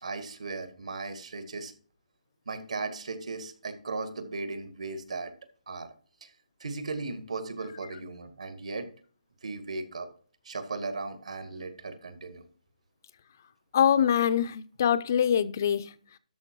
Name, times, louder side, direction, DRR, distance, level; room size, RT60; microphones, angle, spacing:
voice 1, 0.0-1.7 2.5-5.3 5.7-5.9 6.2-6.3 6.6-8.9 9.4-10.1 10.4-12.5, right 3 dB, 65° right, 2.0 m, -37 dB
voice 2, 13.7-15.9, left 8 dB, 25° left, 0.4 m, -24 dB
12.5 x 4.6 x 4.5 m
hypercardioid pair, 180°, 4 cm